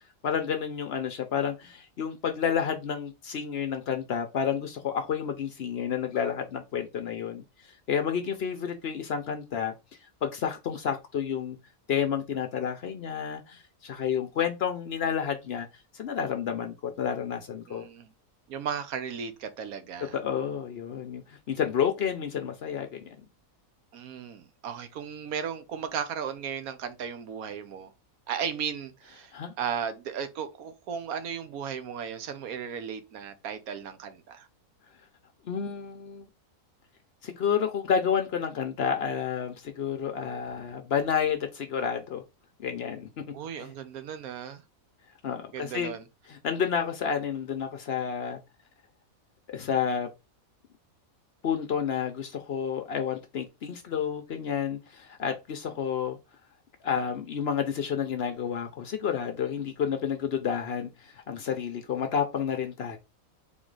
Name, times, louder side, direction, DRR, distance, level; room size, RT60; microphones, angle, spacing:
voice 1, 0.2-9.7 10.2-11.6 11.9-15.7 15.9-17.9 20.1-23.2 29.3-29.5 35.4-36.3 37.2-42.2 42.6-43.1 43.6-43.7 45.2-45.9 46.3-48.4 49.5-50.1 51.4-56.2 56.8-63.0, left 7 dB, 60° left, 0.7 m, -30 dB
voice 2, 17.7-18.1 18.5-20.2 23.9-27.9 28.3-29.3 29.6-34.5 43.3-44.6 45.5-46.0, right 7 dB, 85° right, 1.2 m, -35 dB
3.9 x 3.1 x 3.8 m
omnidirectional pair, 1.5 m